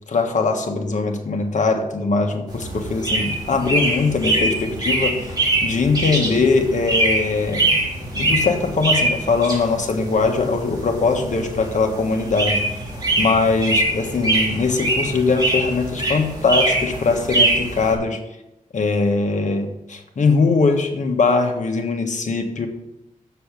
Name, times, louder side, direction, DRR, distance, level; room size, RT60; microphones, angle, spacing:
voice 1, 0.1-7.8 8.1-12.6 13.2-18.2 18.7-22.7, left 4 dB, 60° left, 4 dB, 1.5 m, -21 dB
sound 1, 2.5-17.9, right 2 dB, 30° right, 3.4 m, -23 dB
7.0 x 6.8 x 6.7 m, 0.89 s
wide cardioid pair, 85°, 14 cm